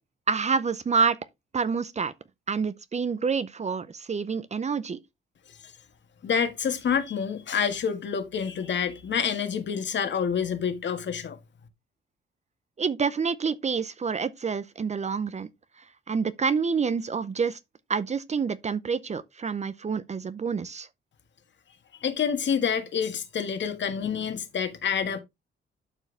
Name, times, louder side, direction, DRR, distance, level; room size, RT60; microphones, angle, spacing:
voice 1, 0.3-1.2 1.5-2.1 2.5-5.0 12.8-15.5 16.1-17.6 17.9-20.9, right 5 dB, 35° right, 0.6 m, -27 dB
voice 2, 6.2-11.4 22.0-25.2, left 7 dB, 60° left, 1.8 m, -27 dB
11.5 x 4.6 x 3.4 m
cardioid pair, 105°, 21 cm